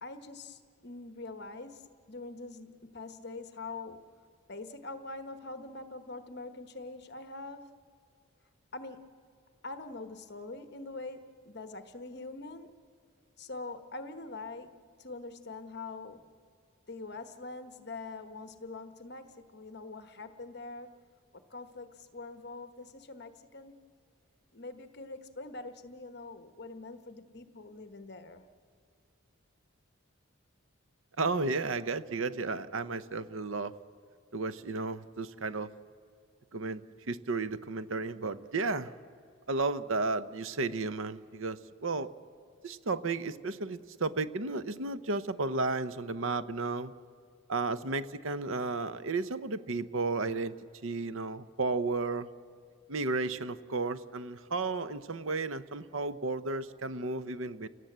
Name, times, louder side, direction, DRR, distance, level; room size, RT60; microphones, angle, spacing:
voice 1, 0.0-4.0 4.5-7.7 8.7-9.1 9.6-12.7 13.4-16.3 16.9-20.9 21.5-23.8 24.5-28.5, left 3 dB, 50° left, 8 dB, 1.1 m, -44 dB
voice 2, 31.2-33.7 34.3-35.7 36.5-38.9 39.5-42.1 42.6-46.9 47.5-50.5 50.8-52.3 52.9-57.7, right 3 dB, 75° right, 13 dB, 0.8 m, -33 dB
29.5 x 17.5 x 7.9 m, 2.3 s
head